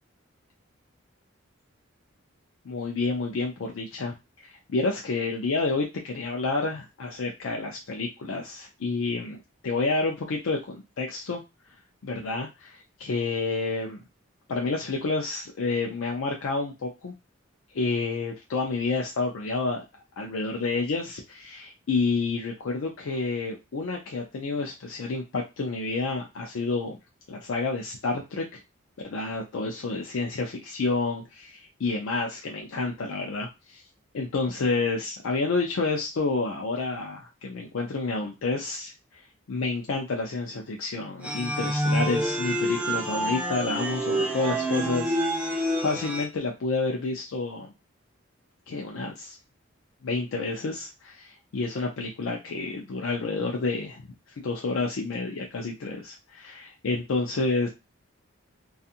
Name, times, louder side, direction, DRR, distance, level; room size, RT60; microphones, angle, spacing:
voice 1, 2.6-4.1 4.4-9.4 9.6-11.4 12.0-14.0 14.5-17.1 17.7-19.8 20.2-27.0 27.3-28.6 29.0-33.8 34.1-45.2 45.4-47.7 48.7-49.4 50.0-54.0 54.4-57.7, left 3 dB, 75° left, 0 dB, 0.4 m, -29 dB
sound 1, 41.2-46.2, right 1 dB, 5° right, 0.3 m, -27 dB
2.5 x 2.4 x 2.7 m, 0.25 s
head